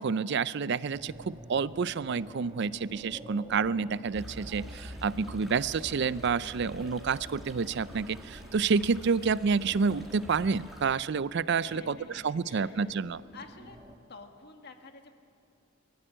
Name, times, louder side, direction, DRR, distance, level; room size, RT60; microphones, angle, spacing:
voice 1, 0.0-12.0 12.2-13.2, right 5 dB, 60° right, 18 dB, 0.4 m, -29 dB
sound 1, 0.9-14.0, right 1 dB, 20° right, 1.9 m, -49 dB
sound 2, 4.1-10.9, equal, ahead, 4.2 m, -46 dB
voice 2, 11.6-13.0 13.3-13.8 14.1-15.2, left 3 dB, 55° left, 4 dB, 1.8 m, -50 dB
23.0 x 14.5 x 9.0 m, 2.4 s
head